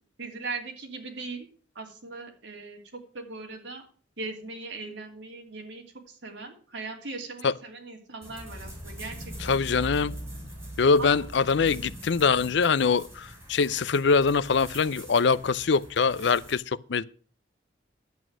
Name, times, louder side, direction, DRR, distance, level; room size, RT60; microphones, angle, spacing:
voice 1, 0.2-1.5 1.7-3.8 4.2-9.8 11.0-11.3, right 3 dB, 75° right, 2.9 m, -39 dB
sound 1, 8.2-16.6, equal, 15° right, 4.4 m, -42 dB
voice 2, 9.5-10.1 10.8-16.6 16.9-17.0, left 5 dB, 70° left, 0.5 m, -23 dB
11.0 x 8.3 x 6.1 m
head